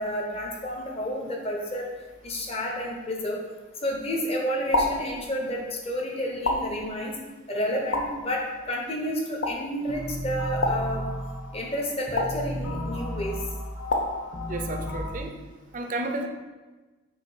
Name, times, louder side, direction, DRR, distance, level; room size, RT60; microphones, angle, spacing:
voice 1, 0.0-1.9 2.2-3.4 3.8-7.1 7.5-11.1 11.5-13.4, equal, 30° left, -1 dB, 0.9 m, -30 dB
sound 1, 4.7-5.1 6.5-6.9 7.9-8.3 9.4-9.7 10.6-11.0 12.2-12.5 13.9-14.3, left 2 dB, 65° left, 0.6 m, -27 dB
sound 2, 9.9-15.1, left 1 dB, 45° left, 1.5 m, -34 dB
voice 2, 14.5-15.3 15.7-16.3, right 2 dB, 40° right, 4 dB, 0.5 m, -32 dB
6.4 x 2.7 x 5.4 m, 1.2 s
head